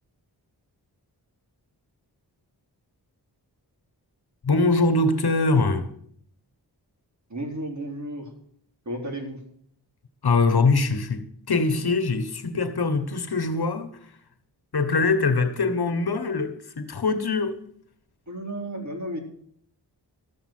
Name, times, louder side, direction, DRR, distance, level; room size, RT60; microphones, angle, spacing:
voice 1, 4.4-5.9 10.2-13.9 14.7-17.6, left 3 dB, 60° left, 1.4 m, -23 dB
voice 2, 7.3-8.3 8.9-9.4 18.3-19.2, right 1 dB, 40° right, 4.0 m, -33 dB
14.0 x 7.5 x 7.6 m
cardioid pair, 55°, 42 cm